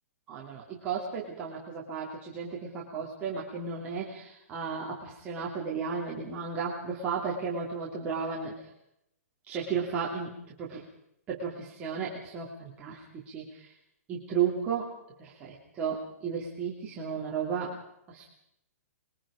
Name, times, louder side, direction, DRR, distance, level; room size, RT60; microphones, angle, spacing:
voice 1, 0.3-8.7 9.5-10.3 10.6-10.8 11.3-13.7 14.1-14.9 15.2-17.8 18.1-18.3, right 6 dB, 15° right, -5 dB, 2.6 m, -34 dB
27.5 x 22.0 x 5.0 m, 0.80 s
hypercardioid pair, 170°, 8 cm